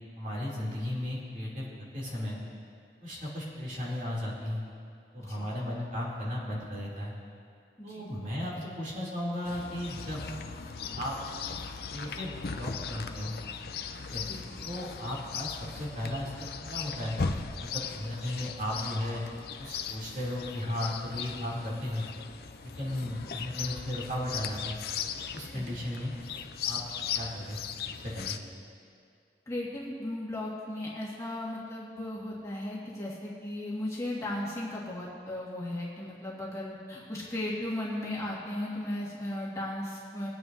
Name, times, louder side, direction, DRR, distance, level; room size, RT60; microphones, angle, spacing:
voice 1, 0.2-2.4 3.0-4.6 5.1-7.1 7.8-10.2 10.9-11.2 11.9-13.4 14.0-14.2 14.6-17.2 17.6-19.2 19.6-22.0 22.6-24.8 25.3-26.1 26.6-26.8 27.1-27.6 27.9-28.4, left 1 dB, 45° right, -6 dB, 2.9 m, -35 dB
Chirp tweet, 9.4-28.4, left 6 dB, 60° left, 0.5 m, -38 dB
voice 2, 29.5-40.3, left 1 dB, 20° left, -6 dB, 1.8 m, -36 dB
22.5 x 9.1 x 2.7 m, 2.4 s
head